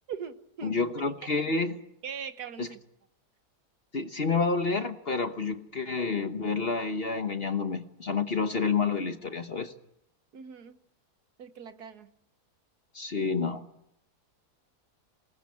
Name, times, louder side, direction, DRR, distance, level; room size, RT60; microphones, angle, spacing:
voice 1, 0.1-0.7 1.4-1.5 2.0-2.8 10.3-10.8 11.4-12.1, right 7 dB, 65° right, 10 dB, 1.7 m, -41 dB
voice 2, 0.6-1.8 2.6-2.7 3.9-9.7 12.9-13.7, left 4 dB, 40° left, 8 dB, 1.2 m, -29 dB
25.5 x 19.5 x 8.5 m, 0.79 s
omnidirectional pair, 1.8 m